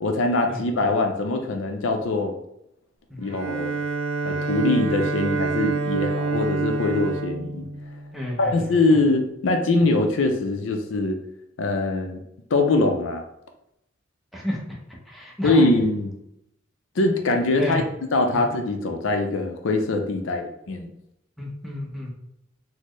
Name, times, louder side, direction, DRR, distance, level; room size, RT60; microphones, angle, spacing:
voice 1, 0.0-2.3 3.2-3.8 4.2-7.7 8.4-11.2 11.6-12.2 12.5-13.2 15.4-16.1 17.0-17.8 18.1-20.9, left 2 dB, 75° left, 4 dB, 0.5 m, -22 dB
Bowed string instrument, 3.2-8.5, right 4 dB, 80° right, 0.5 m, -27 dB
voice 2, 8.1-8.6 14.3-14.6 15.1-15.7 17.6-17.8 21.4-22.1, left 1 dB, ahead, -3 dB, 0.7 m, -30 dB
4.2 x 2.1 x 3.0 m, 0.81 s
head